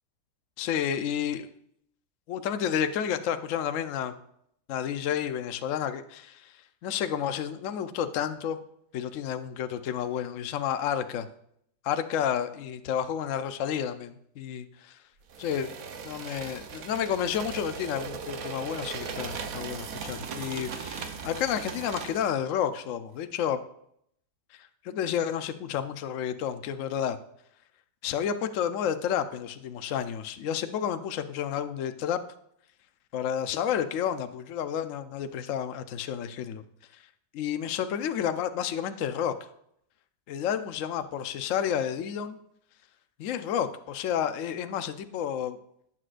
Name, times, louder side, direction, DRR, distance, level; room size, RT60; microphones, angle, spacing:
voice 1, 0.6-1.5 2.3-4.2 4.7-6.5 6.8-8.6 8.9-11.3 11.8-15.0 15.4-15.7 16.0-23.6 24.8-27.2 28.0-32.2 33.1-36.6 37.3-39.4 40.3-42.4 43.2-45.6, left 9 dB, 60° left, 9 dB, 0.9 m, -30 dB
sound 1, 15.3-22.4, right 6 dB, 60° right, 1.3 m, -38 dB
17.5 x 7.6 x 2.5 m, 0.71 s
omnidirectional pair, 1.8 m